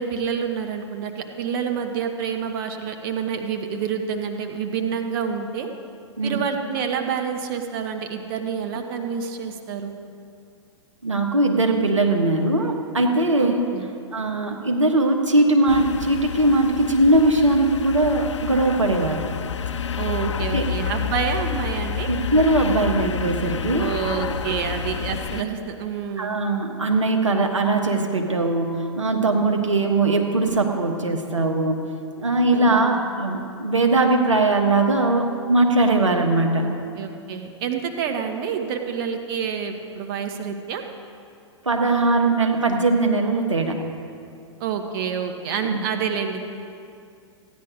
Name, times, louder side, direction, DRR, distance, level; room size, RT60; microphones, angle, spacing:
voice 1, 0.0-5.7 6.2-9.9 13.4-13.9 20.0-22.1 23.8-26.4 32.5-33.0 36.6-40.8 44.6-46.4, right 7 dB, 50° right, 5 dB, 1.1 m, -28 dB
voice 2, 11.0-13.7 14.1-19.2 20.5-20.6 22.1-23.9 26.2-31.9 32.2-36.7 41.6-43.8 45.6-45.8, right 2 dB, 90° right, 3 dB, 1.3 m, -20 dB
sound 1, 15.7-25.4, left 7 dB, 75° left, 0.6 m, -29 dB
15.5 x 10.5 x 5.1 m, 2.5 s
figure-of-eight pair, 110°, 15 cm